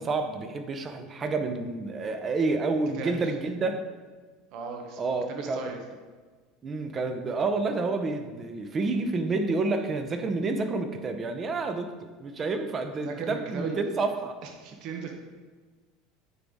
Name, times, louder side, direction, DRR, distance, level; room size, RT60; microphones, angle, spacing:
voice 1, 0.0-3.8 5.0-5.7 6.6-14.4, right 3 dB, 30° right, 7 dB, 0.7 m, -29 dB
voice 2, 4.5-5.0 5.3-5.8 13.0-13.8 14.4-15.1, right 5 dB, 60° right, 3 dB, 0.9 m, -36 dB
9.4 x 4.0 x 3.5 m, 1.4 s
supercardioid pair, 115°, 0 cm